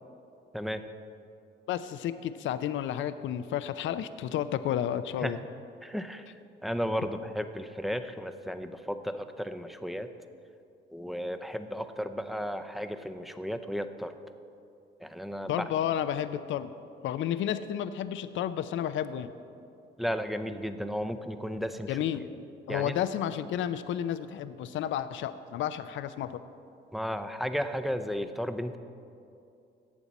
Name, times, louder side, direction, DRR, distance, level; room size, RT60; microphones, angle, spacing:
voice 1, 1.7-5.4 15.5-16.7 17.0-19.3 21.9-22.2 22.7-26.4, left 10 dB, 75° left, 12 dB, 0.5 m, -31 dB
voice 2, 5.8-6.3 6.6-10.1 10.9-14.1 15.0-15.5 20.0-22.2 22.7-23.0 26.9-28.8, equal, ahead, 8 dB, 0.6 m, -34 dB
17.0 x 7.2 x 4.1 m, 2.6 s
cardioid pair, 90°, 20 cm